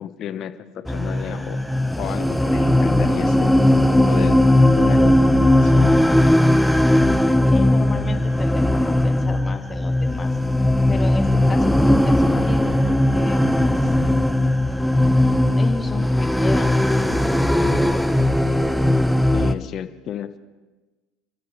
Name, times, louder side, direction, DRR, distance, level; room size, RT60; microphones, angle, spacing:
voice 1, 0.0-1.6 2.0-3.5 3.9-4.4 4.8-5.3 5.6-5.9 19.3-20.4, left 10 dB, 50° left, 11 dB, 1.1 m, -32 dB
sound 1, 0.9-19.5, left 1 dB, ahead, 1.0 m, -18 dB
voice 2, 7.5-10.3 10.9-13.9 15.5-17.1, left 4 dB, 25° left, 5 dB, 2.0 m, -33 dB
29.5 x 13.5 x 3.4 m, 1.2 s
hypercardioid pair, 75°, 0 cm